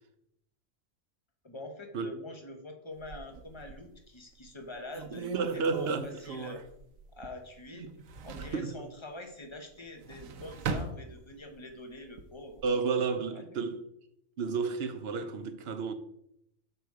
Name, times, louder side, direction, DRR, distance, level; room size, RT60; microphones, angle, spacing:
voice 1, 1.4-6.6 7.1-7.9 8.2-12.6 13.3-13.4, left 2 dB, 25° left, 1.0 m, -45 dB
sound 1, 3.0-4.0 4.5-4.6 4.9-7.6 7.9-8.7 9.8-11.6 12.0-12.7, right 4 dB, 80° right, 1.1 m, -39 dB
voice 2, 5.1-6.1 7.8-8.0 8.5-8.7 12.6-13.8 14.4-15.9, right 5 dB, 55° right, 0.9 m, -31 dB
6.8 x 5.3 x 4.7 m
omnidirectional pair, 1.4 m